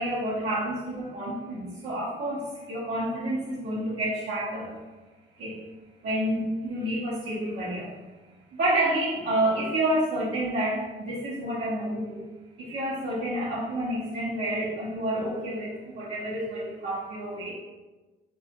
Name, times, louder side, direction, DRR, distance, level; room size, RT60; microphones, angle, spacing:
voice 1, 0.0-4.7 5.4-5.6 6.0-7.9 8.5-12.2 12.6-17.5, right 1 dB, 60° right, -10 dB, 0.8 m, -29 dB
2.6 x 2.2 x 2.7 m, 1.2 s
cardioid pair, 90°, 20 cm